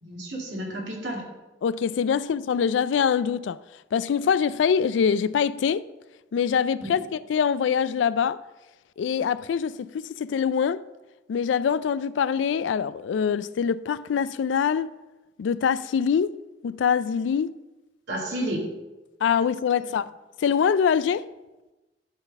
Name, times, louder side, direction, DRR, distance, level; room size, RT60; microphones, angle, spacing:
voice 1, 0.0-1.2 6.8-7.0 18.1-18.6 19.8-20.0, right 1 dB, 85° right, 2.3 m, -31 dB
voice 2, 1.6-3.6 3.9-5.8 6.3-8.4 9.0-10.8 11.3-14.9 15.4-16.3 16.6-17.5 19.2-20.1 20.4-21.3, left 7 dB, 85° left, 0.3 m, -24 dB
11.0 x 4.0 x 5.3 m
head